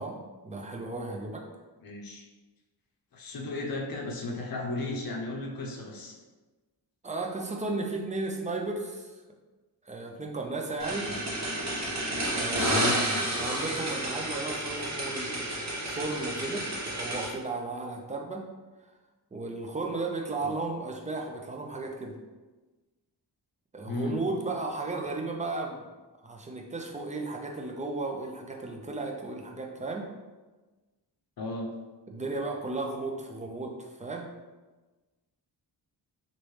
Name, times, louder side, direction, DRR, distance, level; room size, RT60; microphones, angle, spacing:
voice 1, 0.0-1.4 7.0-9.1 9.9-11.1 12.3-13.1 13.3-15.6 15.8-16.7 17.0-18.4 19.3-22.1 23.7-25.8 26.2-30.1 32.1-34.3, right 3 dB, 20° right, 1 dB, 0.4 m, -34 dB
voice 2, 1.8-2.2 3.1-6.2 11.1-11.2 12.7-13.0 20.4-20.6 23.9-24.2 31.4-31.7, left 2 dB, 55° left, 0 dB, 0.7 m, -35 dB
sound 1, 10.8-17.3, right 1 dB, 40° right, 0.9 m, -30 dB
3.1 x 2.6 x 3.1 m, 1.2 s
wide cardioid pair, 100°, 42 cm